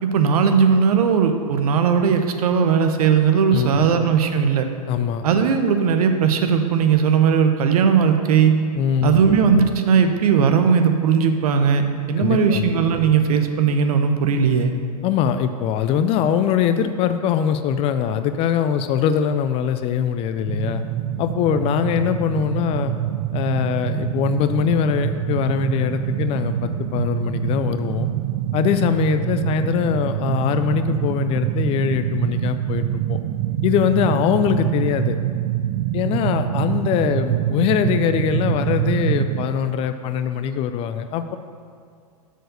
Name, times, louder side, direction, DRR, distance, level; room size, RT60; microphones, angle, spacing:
voice 1, 0.0-4.7 5.2-8.6 9.0-11.8 12.1-14.7, right 6 dB, 65° right, 7 dB, 0.8 m, -18 dB
voice 2, 3.5-3.9 4.9-5.3 8.8-9.2 12.2-12.7 15.0-20.8 21.2-22.9 23.3-28.1 28.5-33.2 33.6-35.2 35.9-41.4, left 8 dB, 30° left, 9 dB, 0.3 m, -22 dB
sound 1, 20.5-39.5, right 12 dB, 40° right, 0.4 m, -25 dB
6.2 x 4.6 x 6.5 m, 2.2 s
hypercardioid pair, 110°, 20 cm